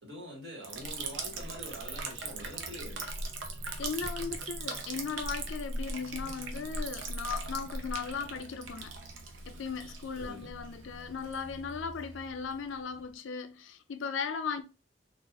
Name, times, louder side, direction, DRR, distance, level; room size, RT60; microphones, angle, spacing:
voice 1, 0.0-3.1 10.2-10.5, equal, 55° right, 1.7 m, -45 dB
Liquid, 0.6-13.1, right 3 dB, 80° right, 0.6 m, -40 dB
voice 2, 3.8-9.0 9.5-14.6, left 5 dB, 75° left, 0.4 m, -37 dB
3.9 x 2.4 x 2.4 m
head